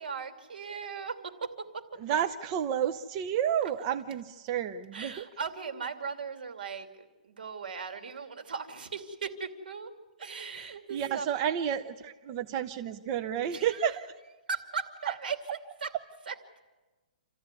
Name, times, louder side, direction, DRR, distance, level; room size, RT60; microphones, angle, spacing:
voice 1, 0.0-2.0 4.9-9.9 10.2-11.3 13.5-16.4, right 5 dB, 80° right, 7 dB, 2.6 m, -38 dB
voice 2, 2.0-5.2 10.9-14.0, right 9 dB, 30° right, 8 dB, 0.7 m, -31 dB
28.0 x 14.0 x 9.7 m, 1.2 s
hypercardioid pair, 160°, 5 cm